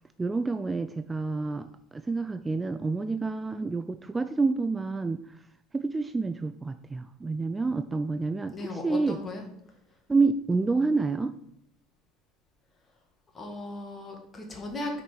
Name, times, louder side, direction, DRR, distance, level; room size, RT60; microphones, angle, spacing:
voice 1, 0.2-5.2 5.7-9.2 10.1-11.3, right 3 dB, 15° right, 10 dB, 0.4 m, -28 dB
voice 2, 8.5-9.4 13.3-15.0, left 2 dB, 30° left, 1 dB, 2.0 m, -37 dB
6.3 x 5.2 x 6.1 m, 0.76 s
figure-of-eight pair, 65°, 0 cm